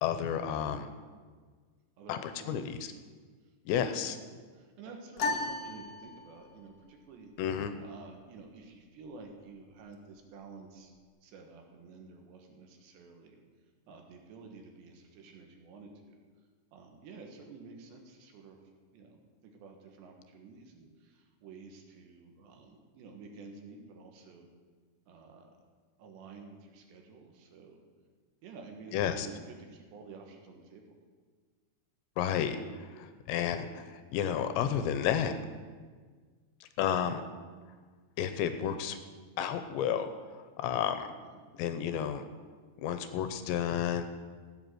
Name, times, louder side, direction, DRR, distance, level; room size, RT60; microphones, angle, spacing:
voice 1, 0.0-0.9 2.1-2.9 3.7-4.2 7.4-7.7 28.9-29.3 32.2-35.3 36.6-37.2 38.2-39.0 39.4-41.1 41.5-42.2 42.8-44.0, left 9 dB, 85° left, 9 dB, 2.9 m, -32 dB
voice 2, 2.0-2.6 3.7-4.1 4.6-7.3 7.8-10.9 11.2-13.4 13.9-16.2 16.7-18.6 18.9-19.2 19.5-24.5 25.1-25.5 26.0-27.8 28.4-29.0 29.3-30.8 41.3-41.4, right 4 dB, 75° right, 3 dB, 3.6 m, -50 dB
sound 1, 5.2-6.7, left 3 dB, 70° left, 2.1 m, -35 dB
14.5 x 8.3 x 7.8 m, 1.5 s
omnidirectional pair, 5.3 m